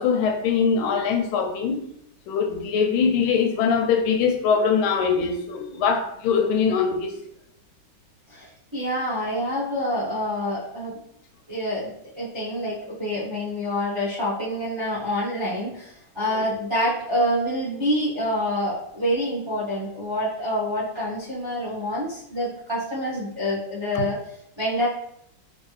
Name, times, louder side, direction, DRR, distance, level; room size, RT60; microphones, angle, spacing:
voice 1, 0.0-1.8 2.3-7.2, left 6 dB, 85° left, 4 dB, 1.4 m, -22 dB
voice 2, 8.3-11.0 11.5-11.9 12.1-24.2 24.6-24.9, equal, 35° right, -8 dB, 0.4 m, -27 dB
3.2 x 2.6 x 3.1 m, 0.74 s
omnidirectional pair, 2.2 m